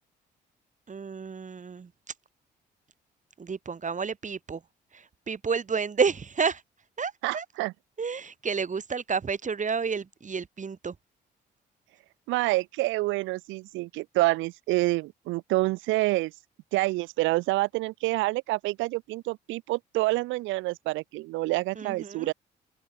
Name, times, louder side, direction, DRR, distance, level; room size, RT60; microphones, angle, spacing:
voice 1, 0.9-1.9 3.4-4.6 4.9-6.6 7.0-7.5 8.0-10.9 21.8-22.3, right 5 dB, 40° right, 2.1 m, -30 dB
voice 2, 7.2-7.7 12.3-16.3 16.7-22.3, right 20 dB, 75° right, 0.4 m, -27 dB
open air
hypercardioid pair, 55°, 20 cm